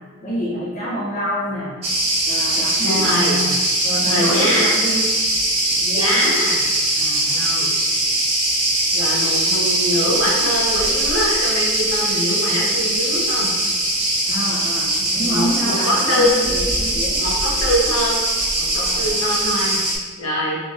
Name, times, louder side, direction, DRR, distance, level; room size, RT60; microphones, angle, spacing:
voice 1, 0.2-1.8 2.3-3.6 3.8-5.2 5.8-6.4 7.0-7.4 14.3-17.2 18.8-19.1, equal, 35° left, -8 dB, 0.6 m, -27 dB
Cricket, 1.8-20.0, right 1 dB, 30° right, 0.9 m, -21 dB
voice 2, 2.8-3.3 4.0-4.7 5.9-6.6 7.3-7.7 8.9-13.5 15.2-16.3 17.2-18.2 18.6-19.8 20.2-20.6, equal, 65° left, -6 dB, 1.2 m, -23 dB
3.7 x 3.6 x 2.5 m, 1.4 s
head